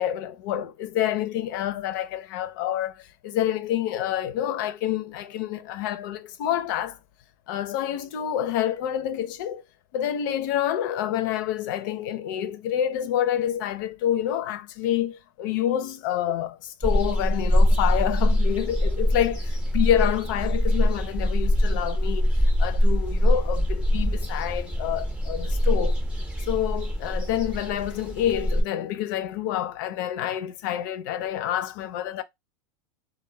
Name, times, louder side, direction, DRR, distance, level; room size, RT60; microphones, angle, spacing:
voice 1, 0.0-7.0 7.5-9.6 9.9-22.3 22.6-26.0 26.5-32.2, left 11 dB, 65° left, 0.4 m, -28 dB
sound 1, 16.8-28.6, equal, 10° right, 0.6 m, -23 dB
2.2 x 2.1 x 3.1 m
hypercardioid pair, 110°, 11 cm